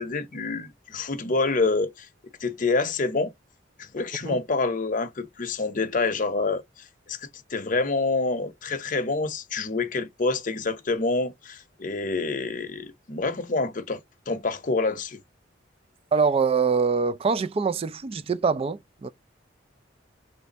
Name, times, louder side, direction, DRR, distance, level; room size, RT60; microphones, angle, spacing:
voice 1, 0.0-2.1 2.4-3.3 3.8-7.2 7.5-14.0 14.3-15.2, left 3 dB, 45° left, 0.7 m, -27 dB
voice 2, 16.1-19.1, right 5 dB, 30° right, 0.3 m, -24 dB
3.3 x 2.5 x 4.1 m
head